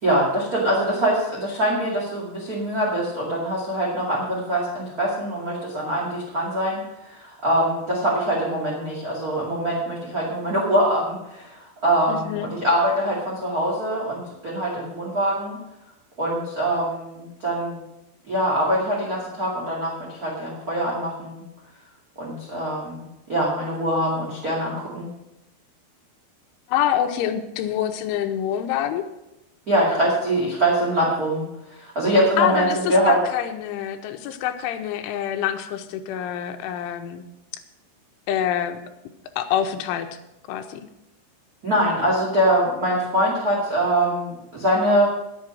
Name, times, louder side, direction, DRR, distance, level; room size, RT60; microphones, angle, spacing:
voice 1, 0.0-15.6 16.2-17.8 18.3-21.4 22.2-23.0 23.3-25.1 29.7-31.4 31.7-33.2 41.6-45.1, right 1 dB, 35° right, -4 dB, 1.6 m, -23 dB
voice 2, 12.1-12.5 26.7-29.0 32.4-37.2 38.3-38.8 39.4-40.1 40.5-40.9, left 10 dB, 90° left, 7 dB, 3.2 m, -26 dB
11.5 x 8.7 x 6.2 m, 0.90 s
omnidirectional pair, 5.5 m